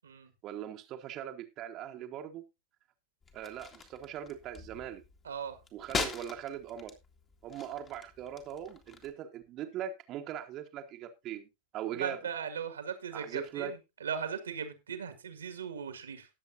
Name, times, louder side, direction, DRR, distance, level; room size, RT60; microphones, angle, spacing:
voice 1, 0.4-2.4 3.3-5.0 5.7-7.0 7.4-11.5 11.7-12.2 13.1-13.7, right 10 dB, 35° right, 1.4 m, -40 dB
sound 1, 3.2-9.1, left 4 dB, 25° left, 2.1 m, -42 dB
voice 2, 5.2-5.6 11.9-16.3, right 7 dB, 70° right, 1.8 m, -38 dB
19.0 x 7.7 x 2.6 m
figure-of-eight pair, 90°, 0 cm